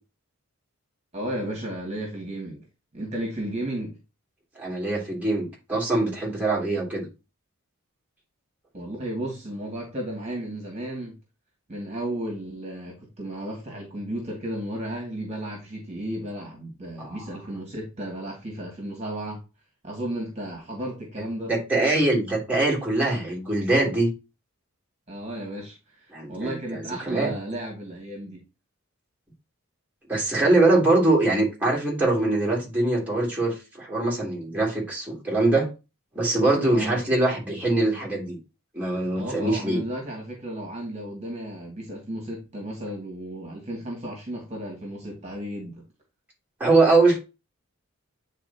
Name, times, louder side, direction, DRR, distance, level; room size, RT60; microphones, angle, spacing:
voice 1, 1.1-2.6 2.9-4.0 8.7-11.2 11.7-19.4 19.8-21.5 25.1-28.5 36.7-37.0 39.2-45.8, right 1 dB, 30° right, 2.3 m, -34 dB
voice 2, 4.5-7.1 17.0-17.2 21.5-24.1 26.1-27.3 30.1-35.7 36.1-38.4 38.7-39.8 46.6-47.2, right 2 dB, 5° right, 3.1 m, -23 dB
9.2 x 4.3 x 2.8 m
head